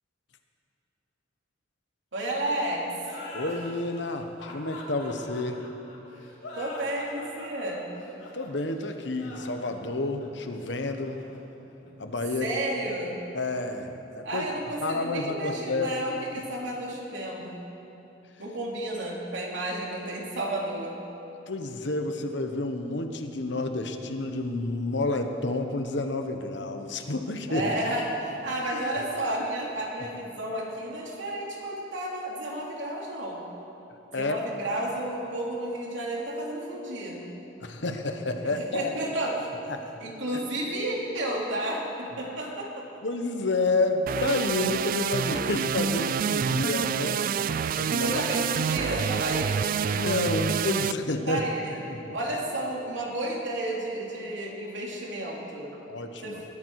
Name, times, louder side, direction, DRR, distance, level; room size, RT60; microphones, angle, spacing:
voice 1, 2.1-2.9 6.6-7.8 12.4-13.1 14.2-17.6 18.4-21.0 27.5-33.4 34.1-37.2 38.4-39.5 40.0-42.8 48.0-49.7 51.3-51.8 52.1-55.7 56.2-56.4, right 1 dB, 70° right, -2 dB, 3.0 m, -32 dB
sound 1, 3.0-12.3, left 1 dB, 85° left, 3.1 m, -44 dB
voice 2, 3.3-5.6 8.3-11.2 12.0-12.5 13.3-14.5 14.8-15.9 16.4-16.5 21.5-27.7 34.1-34.4 37.6-38.9 39.7-39.8 43.0-47.2 47.8-48.2 49.9-51.4 52.1-52.2 55.9-56.4, left 2 dB, 65° left, 6 dB, 1.2 m, -29 dB
sound 2, 44.1-50.9, right 7 dB, 45° right, 0.3 m, -27 dB
21.5 x 13.5 x 4.8 m, 3.0 s
head